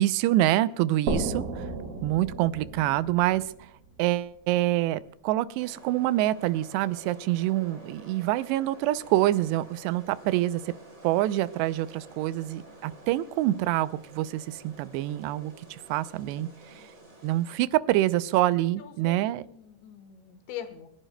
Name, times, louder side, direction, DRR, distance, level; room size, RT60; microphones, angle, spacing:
voice 1, 0.0-1.7 2.0-3.7 4.0-10.7 11.0-16.9 17.2-19.4, right 15 dB, 80° right, 14 dB, 2.6 m, -26 dB
sound 1, 1.1-4.6, right 3 dB, 60° right, 3.7 m, -34 dB
sound 2, 5.6-17.6, right 1 dB, 20° right, 2.8 m, -50 dB
voice 2, 18.8-20.9, left 9 dB, 80° left, 9 dB, 3.5 m, -43 dB
28.5 x 11.0 x 2.2 m, 0.68 s
omnidirectional pair, 5.1 m